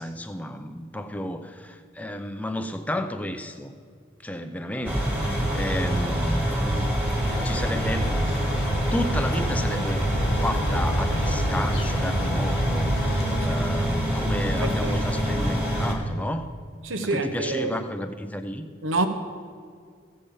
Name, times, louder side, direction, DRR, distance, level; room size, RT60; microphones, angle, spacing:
voice 1, 0.0-3.7 4.2-6.9 7.3-8.1 8.9-10.0 10.4-16.5 17.1-18.7, left 1 dB, 10° left, 0.5 m, -32 dB
sound 1, 4.8-15.9, equal, 10° right, 1.6 m, -25 dB
sound 2, 7.2-13.5, left 2 dB, 80° left, 1.4 m, -33 dB
voice 2, 14.5-15.3 16.8-17.8 18.8-19.1, right 2 dB, 80° right, 0.9 m, -28 dB
15.5 x 5.4 x 7.0 m
head